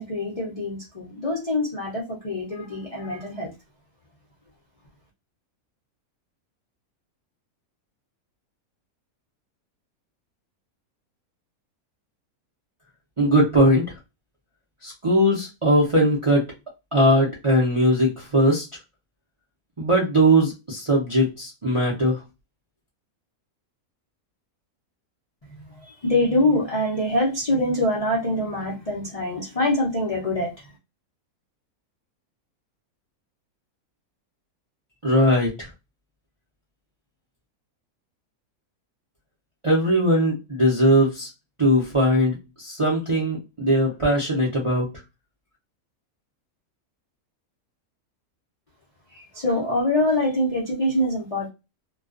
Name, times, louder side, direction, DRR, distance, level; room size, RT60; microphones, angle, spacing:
voice 1, 0.0-3.5 26.0-30.5 49.3-51.5, left 1 dB, 50° left, -3 dB, 0.4 m, -24 dB
voice 2, 13.2-14.0 14.8-16.5 16.9-18.6 19.8-22.2 35.0-35.7 39.6-41.3 41.6-44.9, equal, 40° right, -4 dB, 0.4 m, -20 dB
2.3 x 2.3 x 2.3 m, 0.26 s
omnidirectional pair, 1.6 m